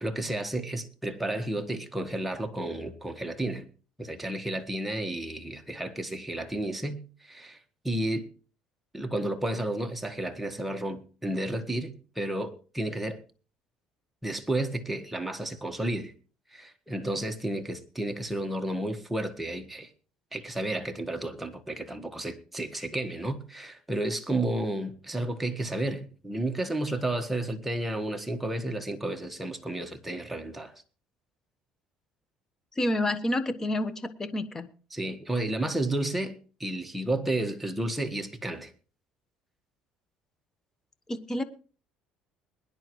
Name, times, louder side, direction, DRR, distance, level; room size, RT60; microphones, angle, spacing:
voice 1, 0.0-3.7 4.0-7.6 7.8-8.2 8.9-13.2 14.2-16.1 16.5-19.9 20.3-30.7 34.9-38.7, right 1 dB, 5° right, 1.5 m, -32 dB
voice 2, 32.8-34.7 41.1-41.4, left 1 dB, 20° left, 1.2 m, -29 dB
22.0 x 10.5 x 3.2 m
cardioid pair, 110°, 2 cm